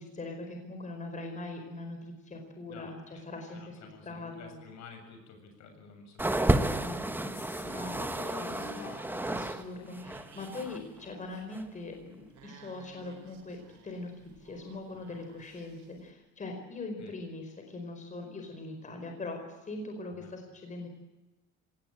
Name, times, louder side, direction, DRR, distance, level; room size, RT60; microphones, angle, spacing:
voice 1, 0.0-4.6 6.7-7.3 7.6-8.9 9.3-12.2 12.4-13.6 13.8-14.1 14.4-19.4 19.7-20.9, left 2 dB, 25° left, 4 dB, 4.9 m, -41 dB
voice 2, 2.7-3.2 3.5-7.8 17.0-17.2 20.1-20.3, left 5 dB, 65° left, 5 dB, 7.2 m, -52 dB
sound 1, 6.2-9.6 9.9-10.8 11.5-11.6, right 1 dB, 5° right, 1.2 m, -31 dB
sound 2, 7.2-11.5, left 7 dB, 90° left, 3.9 m, -49 dB
sound 3, 7.4-16.1, right 6 dB, 65° right, 4.8 m, -57 dB
25.5 x 18.5 x 8.9 m, 1.1 s
cardioid pair, 145°, 30 cm